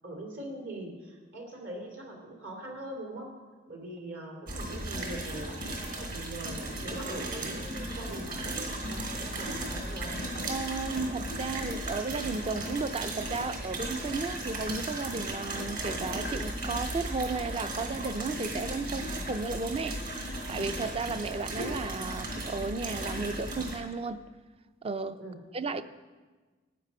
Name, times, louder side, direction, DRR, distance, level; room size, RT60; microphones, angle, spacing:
voice 1, 0.0-3.3 3.7-5.5 5.9-10.1 18.9-19.1 25.2-25.4, right 1 dB, 60° right, 3.2 m, -42 dB
sound 1, 4.5-23.8, right 1 dB, 45° right, 3.0 m, -36 dB
voice 2, 10.5-24.2 24.8-25.2 25.5-25.8, right 3 dB, 30° right, 0.5 m, -34 dB
15.0 x 9.7 x 5.5 m
head